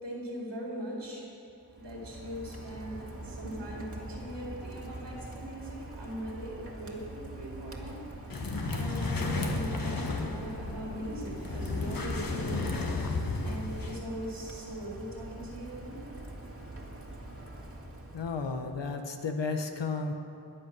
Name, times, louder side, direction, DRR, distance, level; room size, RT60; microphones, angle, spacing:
voice 1, 0.0-1.2 1.7-8.0 8.3-12.6 13.4-16.0, equal, 85° right, -4 dB, 4.3 m, -40 dB
Rain, 1.6-18.9, right 1 dB, 35° right, 2.1 m, -44 dB
sound 1, 8.3-14.0, left 3 dB, 55° left, 1.6 m, -33 dB
voice 2, 18.1-20.2, left 4 dB, 85° left, 5 dB, 1.4 m, -33 dB
22.0 x 8.0 x 6.3 m, 2.6 s
wide cardioid pair, 65°, 42 cm